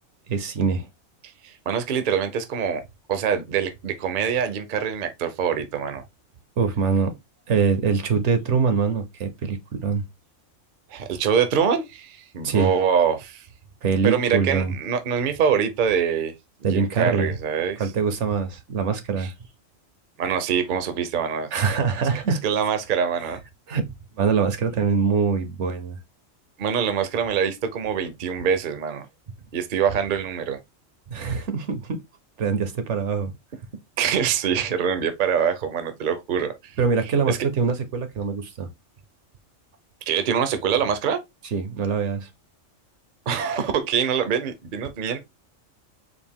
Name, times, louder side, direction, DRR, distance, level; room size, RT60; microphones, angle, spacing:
voice 1, 0.3-0.9 6.6-7.2 7.5-10.0 12.4-12.7 13.8-14.7 16.6-17.3 17.8-19.3 21.5-22.4 23.7-23.9 24.2-26.0 31.1-32.0 32.4-33.3 36.8-38.7 41.5-42.3, right 5 dB, 70° right, 1.0 m, -23 dB
voice 2, 1.4-2.8 3.1-6.0 10.9-13.5 14.0-16.3 16.7-17.8 19.2-19.3 20.2-21.5 22.4-23.4 26.6-29.1 29.5-30.6 34.0-36.8 37.2-37.4 40.1-41.2 43.3-45.2, right 7 dB, 50° right, 0.7 m, -24 dB
4.2 x 2.5 x 3.4 m
omnidirectional pair, 1.3 m